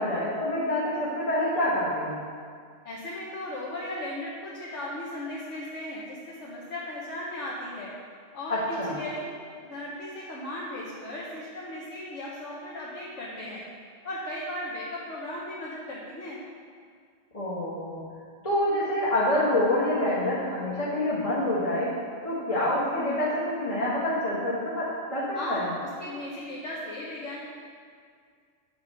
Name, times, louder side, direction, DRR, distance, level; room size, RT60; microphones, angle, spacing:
voice 1, 0.0-2.2 8.5-9.0 17.3-18.0 18.4-21.9 22.2-25.7, left 1 dB, 30° left, -7 dB, 1.4 m, -27 dB
voice 2, 2.8-7.9 8.3-9.3 9.7-13.6 14.0-16.4 25.3-25.7 26.0-27.4, left 1 dB, 70° left, -6 dB, 1.4 m, -36 dB
9.5 x 3.7 x 6.6 m, 2.1 s
omnidirectional pair, 1.3 m